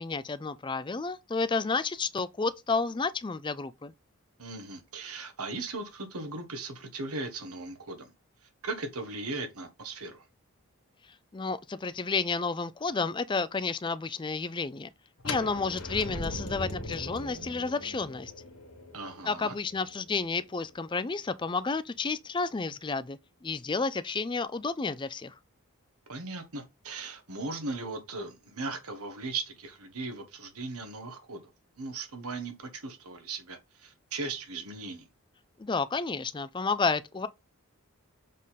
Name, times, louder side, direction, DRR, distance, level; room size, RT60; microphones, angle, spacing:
voice 1, 0.0-3.9 11.3-14.9 15.2-18.3 19.3-25.3 35.6-37.3, left 4 dB, 20° left, 0.4 m, -31 dB
voice 2, 4.4-8.1 8.6-10.2 18.9-19.5 26.1-31.4 31.8-35.1, right 3 dB, 85° right, 1.6 m, -38 dB
sound 1, 15.2-21.0, left 2 dB, 85° left, 1.8 m, -40 dB
7.4 x 3.8 x 4.1 m
head